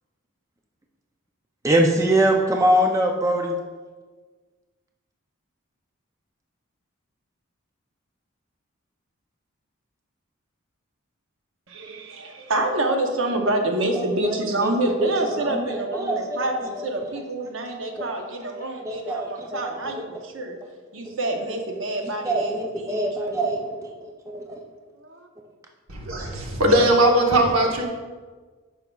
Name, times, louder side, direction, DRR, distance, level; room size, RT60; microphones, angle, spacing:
voice 1, 1.6-3.5 14.0-14.7 15.0-16.8 18.6-20.0 22.0-23.8 24.3-24.6 27.5-27.9, right 1 dB, 15° right, 1 dB, 0.4 m, -24 dB
voice 2, 11.7-20.6 20.9-22.6 22.8-22.9 25.1-25.3, right 2 dB, 60° right, 3 dB, 0.8 m, -27 dB
voice 3, 25.9-27.9, right 1 dB, 80° right, 1 dB, 1.1 m, -19 dB
9.0 x 5.7 x 2.3 m, 1.4 s
head